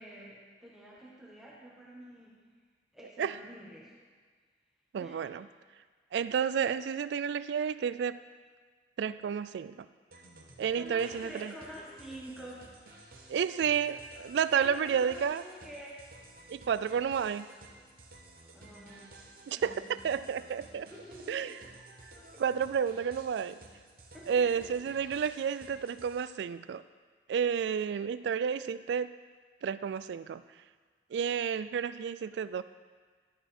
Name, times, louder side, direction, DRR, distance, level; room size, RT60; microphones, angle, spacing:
voice 1, 0.0-2.4 2.9-3.9 5.0-5.2 10.7-12.6 14.5-16.0 18.5-19.1 19.5-20.0 20.9-21.7 22.1-22.4 24.1-24.6, equal, ahead, -6 dB, 1.2 m, -48 dB
voice 2, 4.9-5.5 6.1-8.2 9.0-9.9 10.6-11.5 13.3-15.4 16.5-17.5 19.5-20.9 21.3-21.5 22.4-23.6 24.3-26.8 27.3-29.2 29.6-30.4 31.1-32.6, right 7 dB, 80° right, 14 dB, 0.3 m, -31 dB
sound 1, 10.1-26.4, right 2 dB, 55° right, 1.1 m, -54 dB
11.0 x 5.6 x 4.3 m, 1.5 s
head